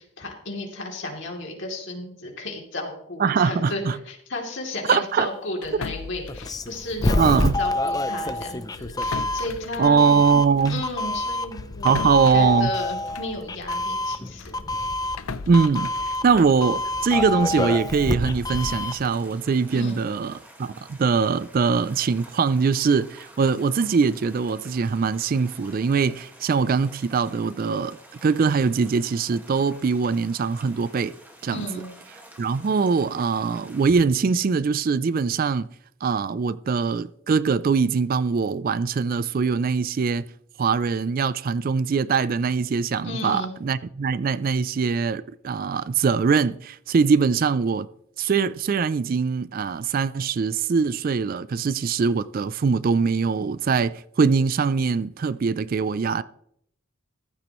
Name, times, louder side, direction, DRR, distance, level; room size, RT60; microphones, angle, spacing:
voice 1, 0.0-10.0 10.7-12.0 12.3-14.9 19.7-20.0 31.5-31.9 43.0-43.5, left 2 dB, 55° left, 2.9 m, -33 dB
voice 2, 3.2-3.9 4.9-5.3 7.2-7.5 9.8-10.8 11.8-12.7 15.5-20.3 20.6-28.0 28.2-31.1 31.4-31.7 32.4-35.7 36.0-40.3 40.6-47.9 48.2-56.2, right 5 dB, 40° right, 0.3 m, -22 dB
sound 1, 5.6-7.7 7.9-8.1 8.7-14.0 14.4-17.5, left 4 dB, 80° left, 0.6 m, -38 dB
Doorbell, 6.3-19.1, left 2 dB, 15° left, 0.5 m, -27 dB
sound 2, 18.2-33.9, right 1 dB, 10° right, 1.7 m, -49 dB
14.5 x 12.0 x 3.1 m
head